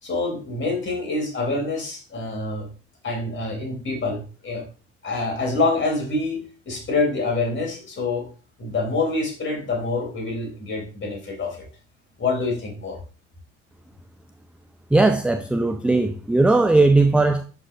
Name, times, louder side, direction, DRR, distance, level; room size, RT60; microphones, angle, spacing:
voice 1, 0.0-2.7 3.0-4.6 5.0-8.3 8.6-11.6 12.2-13.0, left 3 dB, 30° left, 3.4 m, -26 dB
voice 2, 14.9-17.4, right 2 dB, 5° right, 0.5 m, -18 dB
11.0 x 4.8 x 2.6 m
figure-of-eight pair, 55°, 36 cm